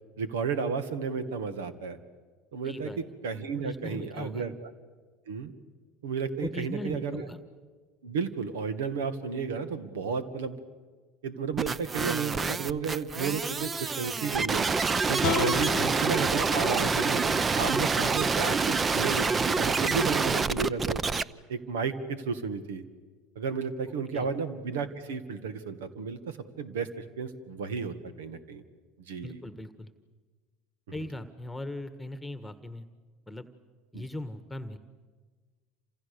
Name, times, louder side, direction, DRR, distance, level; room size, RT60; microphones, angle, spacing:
voice 1, 0.2-2.0 2.5-4.7 5.3-5.5 6.0-7.3 8.0-10.6 11.2-14.7 15.1-21.0 21.5-22.8 23.4-28.6 29.1-29.4 33.9-34.0, right 5 dB, 80° right, 12 dB, 2.0 m, -33 dB
voice 2, 2.6-3.0 3.6-4.5 6.4-7.4 24.1-24.3 29.2-29.9 30.9-32.9 33.3-33.5 33.9-34.8, left 1 dB, 5° left, 10 dB, 1.6 m, -39 dB
sound 1, 11.6-21.2, right 4 dB, 25° right, 0.8 m, -27 dB
sound 2, 15.2-18.4, left 16 dB, 60° left, 0.9 m, -36 dB
29.0 x 27.0 x 6.9 m, 1.4 s
hypercardioid pair, 75°, 0 cm